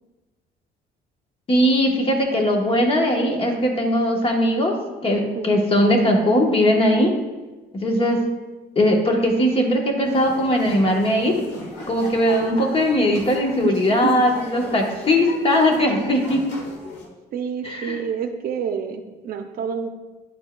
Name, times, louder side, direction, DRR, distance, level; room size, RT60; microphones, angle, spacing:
voice 1, 1.5-7.1 7.8-8.3 8.7-11.3 11.9-16.4 17.6-18.0, equal, 35° left, 2 dB, 1.1 m, -19 dB
voice 2, 5.3-5.8 13.6-13.8 14.0-14.3 17.3-19.9, right 6 dB, 60° right, 6 dB, 0.6 m, -28 dB
sound 1, 10.0-17.1, left 2 dB, 85° left, 1.5 m, -38 dB
10.0 x 4.4 x 2.3 m, 1.2 s
cardioid pair, 110°, 17 cm